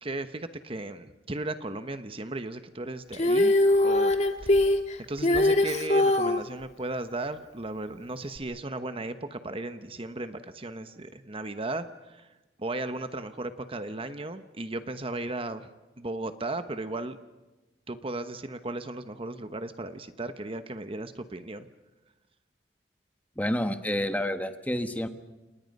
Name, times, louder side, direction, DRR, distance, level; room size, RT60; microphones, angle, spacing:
voice 1, 0.0-3.5 3.8-4.1 4.4-4.6 5.1-12.3 12.6-15.7 16.0-17.2 17.9-21.6, right 2 dB, 30° right, 9 dB, 1.1 m, -35 dB
Female singing, 3.1-6.4 8.4-8.5, left 1 dB, 40° left, 2.0 m, -22 dB
voice 2, 23.4-25.1, left 1 dB, 10° left, 8 dB, 1.4 m, -29 dB
29.5 x 29.0 x 5.4 m, 1.1 s
head